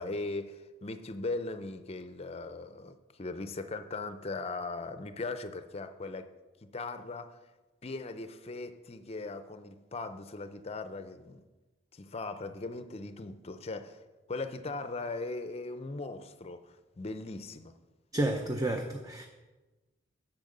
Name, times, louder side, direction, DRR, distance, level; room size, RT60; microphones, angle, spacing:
voice 1, 0.0-6.3 6.7-7.4 7.8-11.4 11.9-14.0 14.3-17.7, left 3 dB, 30° left, 10 dB, 0.6 m, -39 dB
voice 2, 18.1-19.3, right 1 dB, 20° right, 4 dB, 0.6 m, -31 dB
8.7 x 6.0 x 6.6 m, 1.2 s
head